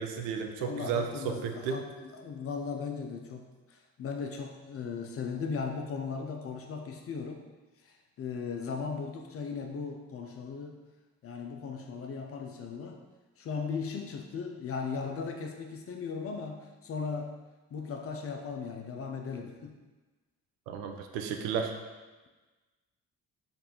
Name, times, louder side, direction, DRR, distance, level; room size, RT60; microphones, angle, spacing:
voice 1, 0.0-1.8 20.7-21.7, right 6 dB, 65° right, 4 dB, 0.5 m, -33 dB
voice 2, 0.6-7.4 7.8-10.8 11.2-13.0 13.4-17.3 17.7-19.8, left 5 dB, 35° left, 3 dB, 0.4 m, -37 dB
3.3 x 2.4 x 4.3 m, 1.2 s
figure-of-eight pair, 40°, 45 cm